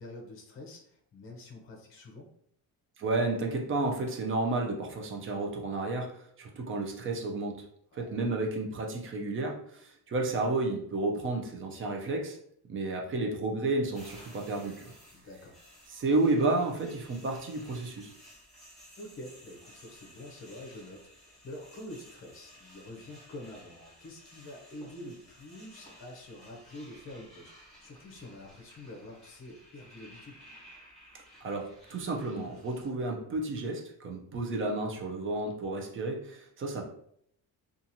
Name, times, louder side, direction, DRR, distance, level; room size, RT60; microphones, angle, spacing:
voice 1, 0.0-2.3 7.9-8.2 15.1-15.6 19.0-30.4, left 1 dB, 35° left, 0 dB, 0.6 m, -47 dB
voice 2, 3.0-7.6 7.9-12.4 12.7-14.9 15.9-18.1 31.4-36.9, right 2 dB, 35° right, 2 dB, 0.4 m, -31 dB
sound 1, 13.9-32.9, equal, ahead, 1.4 m, -55 dB
2.8 x 2.4 x 2.6 m, 0.67 s
cardioid pair, 180°, 38 cm